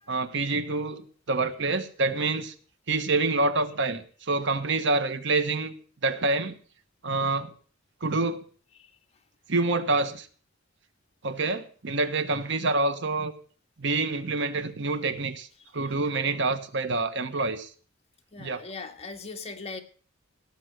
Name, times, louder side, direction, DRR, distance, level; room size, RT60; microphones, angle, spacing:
voice 1, 0.1-2.5 2.9-5.7 6.0-6.6 7.0-7.5 8.0-8.4 9.5-10.3 11.2-13.3 13.8-15.5 15.7-17.7 18.4-18.6, right 3 dB, 65° right, 10 dB, 1.2 m, -27 dB
voice 2, 18.3-19.8, left 4 dB, 30° left, 4 dB, 1.6 m, -39 dB
17.0 x 7.3 x 6.5 m, 0.42 s
head